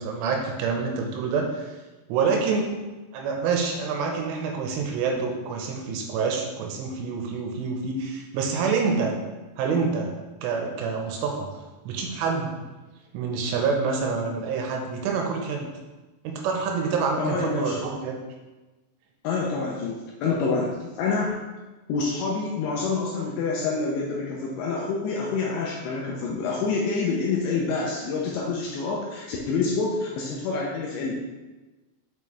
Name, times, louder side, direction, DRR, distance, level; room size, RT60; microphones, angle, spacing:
voice 1, 0.0-1.7 2.1-2.7 3.1-9.1 9.6-10.1 10.4-11.5 11.9-12.5 13.1-15.7 16.2-18.2, right 5 dB, 85° right, 1 dB, 3.1 m, -27 dB
voice 2, 17.2-17.8 19.2-21.5 21.9-31.3, left 4 dB, 80° left, -3 dB, 2.6 m, -27 dB
7.4 x 5.5 x 3.2 m, 1.2 s
omnidirectional pair, 5.8 m